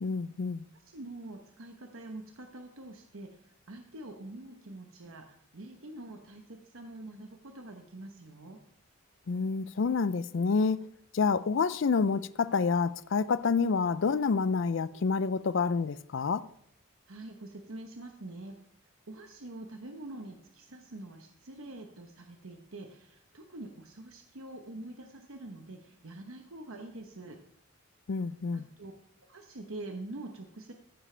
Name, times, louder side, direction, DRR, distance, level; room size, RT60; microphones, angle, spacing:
voice 1, 0.0-0.6 9.3-10.9 11.1-16.4 28.1-28.6, left 5 dB, 60° left, 0.4 m, -28 dB
voice 2, 0.7-5.3 5.5-8.6 17.1-18.5 19.1-27.4 28.5-28.9 29.3-30.7, right 2 dB, 70° right, 1.0 m, -45 dB
15.0 x 10.0 x 3.3 m
head